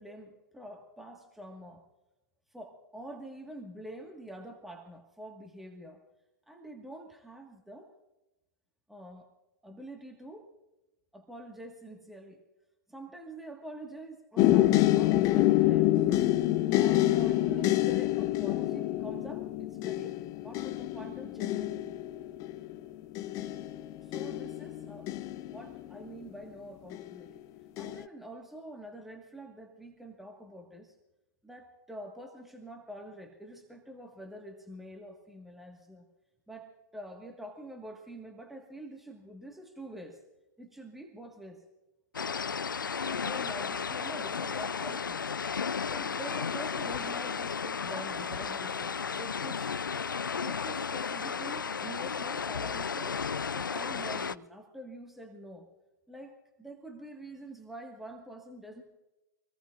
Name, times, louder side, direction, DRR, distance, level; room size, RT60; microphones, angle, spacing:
voice 1, 0.0-1.8 2.5-6.0 6.5-7.9 8.9-9.3 9.6-10.5 11.1-12.4 12.9-15.9 16.7-22.0 24.0-25.1 25.5-27.4 27.8-31.0 31.4-36.0 36.5-40.2 40.6-41.6 43.1-45.2 45.9-49.8 50.4-53.2 53.5-55.7 56.1-58.8, right 1 dB, ahead, 2 dB, 1.6 m, -46 dB
sound 1, 14.4-26.2 26.9-27.4 27.8-28.0, left 15 dB, 30° left, 0.6 m, -27 dB
sound 2, 42.1-54.3, left 6 dB, 90° left, 0.4 m, -34 dB
24.5 x 19.0 x 2.5 m, 0.98 s
hypercardioid pair, 115°, 10 cm